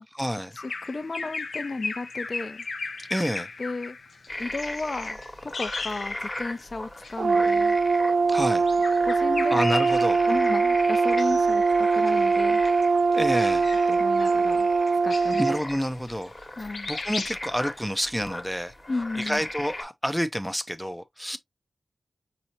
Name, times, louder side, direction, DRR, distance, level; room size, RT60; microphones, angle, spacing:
voice 1, 0.0-0.6 3.1-3.5 8.2-8.7 9.5-10.2 13.1-13.7 15.4-16.3 16.6-18.7 19.1-21.4, equal, ahead, 0.6 m, -29 dB
Bird vocalization bird call bird song, 0.6-6.6 6.9-7.2 8.2-10.5 10.9-11.6 11.9-16.5 16.7-17.3, left 4 dB, 70° left, 0.7 m, -37 dB
voice 2, 0.6-2.6 3.6-4.0 4.4-7.8 9.1-9.6 10.2-12.6 13.9-14.7 15.0-15.4 16.6-16.9 18.9-19.4, left 3 dB, 40° left, 0.7 m, -33 dB
sound 1, 4.3-19.8, left 1 dB, 20° left, 1.3 m, -38 dB
Brass instrument, 7.2-15.6, right 4 dB, 70° right, 0.3 m, -22 dB
5.4 x 2.8 x 2.8 m
wide cardioid pair, 130°, 0 cm